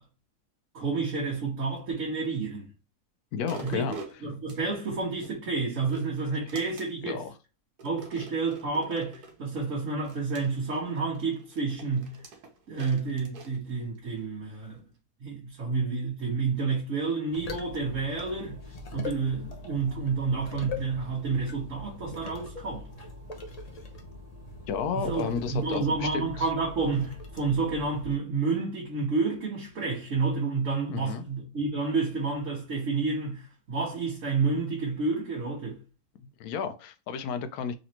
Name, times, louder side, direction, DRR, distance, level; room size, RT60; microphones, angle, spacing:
voice 1, 0.7-2.7 3.6-3.8 4.2-7.2 7.8-12.1 12.7-14.8 15.2-18.6 18.9-22.9 24.9-35.8, right 4 dB, 55° right, 1.4 m, -30 dB
voice 2, 3.3-4.0 7.0-7.4 8.1-8.3 24.7-26.5 30.9-31.2 36.2-37.7, left 6 dB, 75° left, 1.0 m, -32 dB
sound 1, 3.4-5.3 5.8-7.2 7.8-9.4 10.0-14.2 14.7-14.8, right 4 dB, 90° right, 1.5 m, -47 dB
sound 2, 17.3-28.2, left 3 dB, 45° left, 0.5 m, -42 dB
3.9 x 3.1 x 2.9 m
omnidirectional pair, 1.7 m